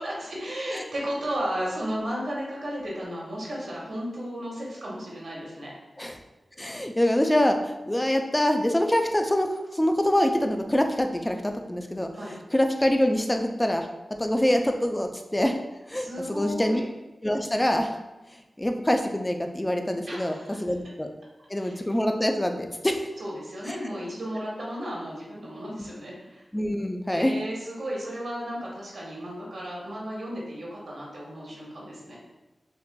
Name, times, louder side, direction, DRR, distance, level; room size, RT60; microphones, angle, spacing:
voice 1, 0.0-5.7 12.2-12.4 15.9-16.8 20.1-20.6 21.6-21.8 23.2-26.4 27.1-32.2, equal, 75° right, -4 dB, 1.3 m, -34 dB
voice 2, 6.6-12.1 12.5-13.9 14.2-15.6 15.9-16.8 17.2-18.0 18.6-20.3 20.6-21.1 21.5-23.1 23.7-23.8 26.5-27.3, left 1 dB, 15° left, 4 dB, 0.4 m, -25 dB
5.8 x 2.5 x 2.2 m, 1.1 s
wide cardioid pair, 65°, 0 cm